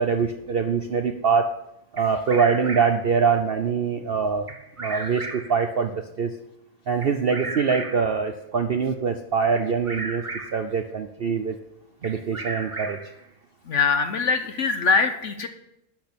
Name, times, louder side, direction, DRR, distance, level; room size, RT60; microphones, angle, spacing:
voice 1, 0.0-1.5 1.9-4.5 4.8-6.3 6.9-10.2 10.5-11.6 12.0-13.0, right 5 dB, 50° right, 6 dB, 0.8 m, -23 dB
Bird vocalization bird call bird song, 2.0-3.1 4.5-5.6 7.0-8.2 9.6-10.7 12.0-13.2, right 3 dB, 25° right, 1.1 m, -35 dB
voice 2, 13.7-15.5, left 5 dB, 65° left, 7 dB, 1.2 m, -22 dB
11.5 x 6.3 x 8.7 m, 0.83 s
omnidirectional pair, 1.4 m